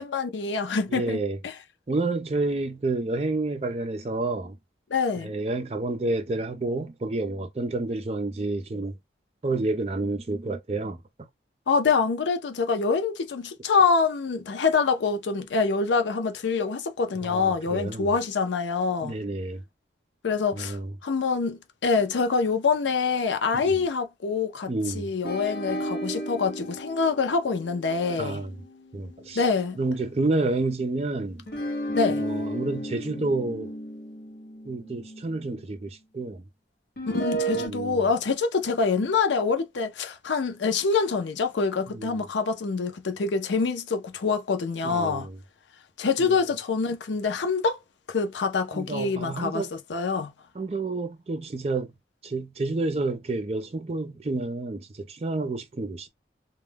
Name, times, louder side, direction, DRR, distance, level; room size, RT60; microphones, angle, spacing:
voice 1, 0.0-1.6 4.9-5.3 11.7-19.2 20.2-28.4 29.3-29.8 31.9-32.3 37.0-45.3 46.0-47.8 48.1-50.3, left 4 dB, 90° left, 0.5 m, -25 dB
voice 2, 0.9-1.4 1.9-4.6 5.2-9.0 9.4-11.0 17.2-18.1 19.0-19.6 20.6-20.9 23.5-23.7 24.7-25.1 28.1-28.5 28.9-29.4 29.8-31.4 32.2-33.8 34.7-36.4 37.5-38.0 41.9-42.2 44.8-45.4 46.2-46.3 48.7-49.7 50.6-51.9 52.2-56.1, right 2 dB, 35° right, 0.4 m, -29 dB
sound 1, 25.2-29.8 31.5-35.6 37.0-37.7, right 1 dB, 55° left, 0.7 m, -33 dB
2.2 x 2.1 x 3.2 m
head